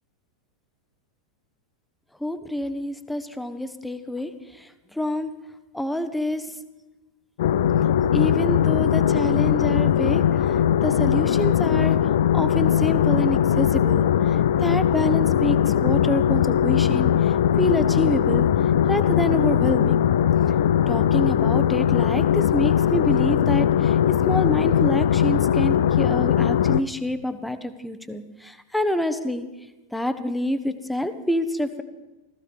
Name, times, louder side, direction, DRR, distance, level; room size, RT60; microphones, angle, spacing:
voice 1, 2.2-5.3 5.7-6.5 7.6-12.0 12.3-18.5 18.9-20.1 20.9-24.0 24.3-29.5 29.9-31.8, left 1 dB, 5° left, 11 dB, 1.0 m, -27 dB
sound 1, 7.4-26.8, left 9 dB, 55° left, 0.5 m, -20 dB
16.0 x 14.5 x 5.3 m, 1.1 s
figure-of-eight pair, 90°, 0 cm